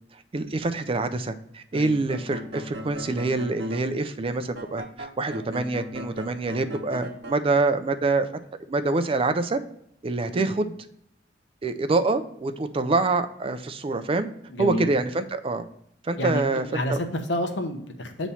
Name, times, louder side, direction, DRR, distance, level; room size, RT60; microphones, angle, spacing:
voice 1, 0.3-8.3 8.7-9.6 10.0-10.8 11.6-14.3 14.6-15.6 16.0-17.0, right 3 dB, 30° right, 9 dB, 0.4 m, -26 dB
sound 1, 2.0-3.9 4.5-7.4, equal, 65° right, 0.8 m, -38 dB
voice 2, 14.5-14.8 16.2-16.4 16.7-18.3, left 1 dB, 80° left, 4 dB, 0.9 m, -29 dB
8.3 x 3.1 x 5.5 m, 0.73 s
head